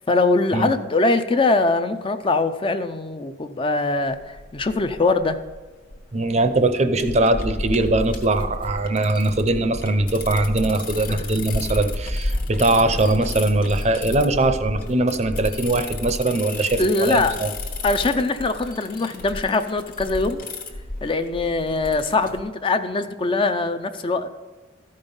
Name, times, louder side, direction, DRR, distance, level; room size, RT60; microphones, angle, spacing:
voice 1, 0.1-5.4 11.1-11.3 16.8-17.4 17.8-20.4 21.0-24.3, left 3 dB, 30° left, 9 dB, 0.4 m, -22 dB
sound 1, 4.1-22.4, left 2 dB, 50° left, 1.1 m, -32 dB
voice 2, 6.1-16.8 17.1-17.5, right 2 dB, 35° right, 10 dB, 0.6 m, -21 dB
13.5 x 5.3 x 5.4 m, 1.3 s
head